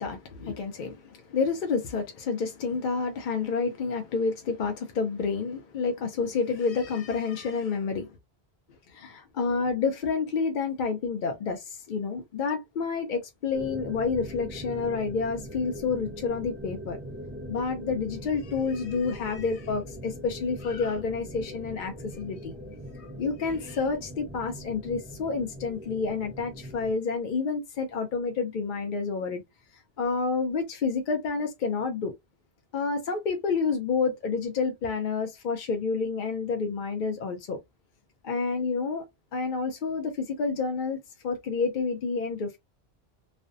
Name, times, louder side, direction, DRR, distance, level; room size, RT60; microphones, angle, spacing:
voice 1, 0.0-8.2 8.9-17.0 17.5-22.5 22.9-29.4 30.0-32.1 32.7-37.6 38.2-39.0 39.3-41.0 41.2-42.6, left 4 dB, 60° left, 0.6 m, -29 dB
sound 1, 13.5-26.9, equal, 15° right, 0.9 m, -41 dB
2.5 x 2.1 x 2.5 m
omnidirectional pair, 1.1 m